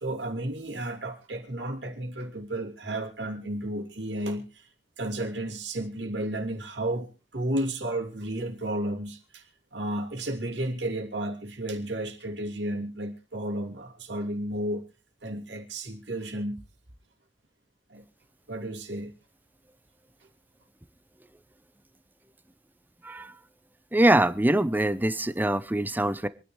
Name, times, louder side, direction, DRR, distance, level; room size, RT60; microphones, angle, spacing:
voice 1, 0.0-4.7 5.0-14.8 15.2-16.6 17.9-18.0 18.5-19.1, right 1 dB, 80° right, 2 dB, 2.7 m, -33 dB
voice 2, 23.9-26.3, right 1 dB, 10° right, 14 dB, 0.7 m, -23 dB
26.5 x 10.0 x 3.2 m, 0.33 s
head